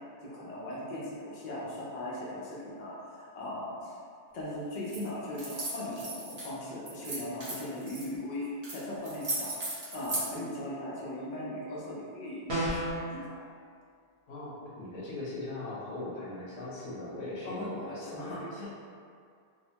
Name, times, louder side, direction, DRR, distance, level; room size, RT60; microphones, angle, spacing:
voice 1, 0.0-4.0 4.3-13.4 17.4-18.7, left 1 dB, 50° left, -7 dB, 0.7 m, -39 dB
sound 1, 4.8-5.0 5.3-6.5 6.9-8.0 8.6-8.8 9.0-10.3, right 2 dB, 40° right, 0.7 m, -36 dB
sound 2, 12.5-13.0, right 1 dB, 75° right, 1.0 m, -30 dB
voice 2, 14.3-18.7, left 2 dB, 85° left, -7 dB, 1.0 m, -39 dB
2.7 x 2.1 x 2.7 m, 2.2 s
omnidirectional pair, 1.1 m